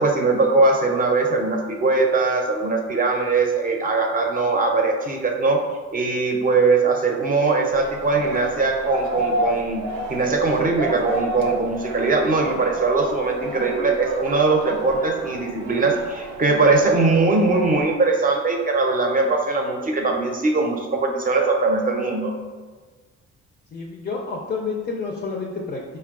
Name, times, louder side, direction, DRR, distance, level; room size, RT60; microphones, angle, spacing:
voice 1, 0.0-5.6 5.9-22.3, right 3 dB, 30° right, 2 dB, 0.6 m, -21 dB
sound 1, 7.7-18.0, right 2 dB, 80° right, 0.6 m, -31 dB
voice 2, 23.7-26.0, left 4 dB, 30° left, 0 dB, 0.5 m, -29 dB
4.5 x 2.2 x 3.6 m, 1.4 s
cardioid pair, 105°, 29 cm